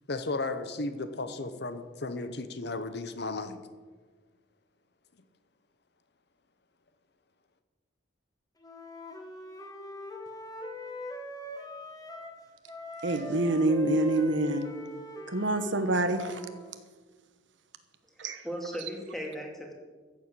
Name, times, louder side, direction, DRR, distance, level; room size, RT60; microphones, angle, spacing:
voice 1, 0.1-3.6, left 2 dB, 55° left, 10 dB, 0.9 m, -34 dB
Wind instrument woodwind instrument, 8.6-12.4 12.7-16.7, equal, 20° left, 1.5 m, -41 dB
voice 2, 13.0-14.7 15.3-16.4 18.2-18.4, right 1 dB, 65° right, 9 dB, 1.1 m, -26 dB
voice 3, 18.1-19.7, equal, ahead, 0 dB, 2.4 m, -38 dB
14.5 x 7.5 x 8.2 m, 1.4 s
head